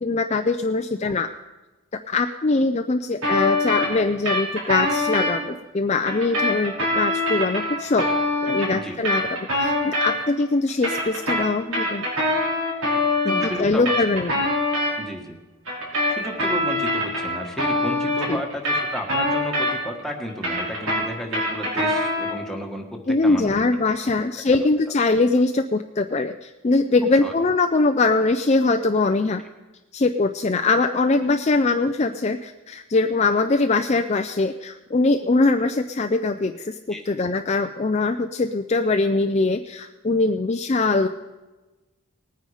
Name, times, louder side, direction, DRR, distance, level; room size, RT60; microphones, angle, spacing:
voice 1, 0.0-1.3 2.1-8.1 8.4-12.1 13.2-14.4 18.3-18.4 23.1-29.4 29.9-41.1, left 3 dB, 30° left, 7 dB, 0.4 m, -22 dB
sound 1, 3.2-5.3 6.1-10.4 10.7-14.9 15.7-20.0 20.3-22.4, left 1 dB, 75° right, 5.5 m, -24 dB
voice 2, 13.3-14.2 15.0-15.4 16.1-23.5 27.0-27.3 36.9-37.0, left 1 dB, ahead, 1 dB, 1.4 m, -33 dB
19.5 x 9.3 x 4.9 m, 1.2 s
head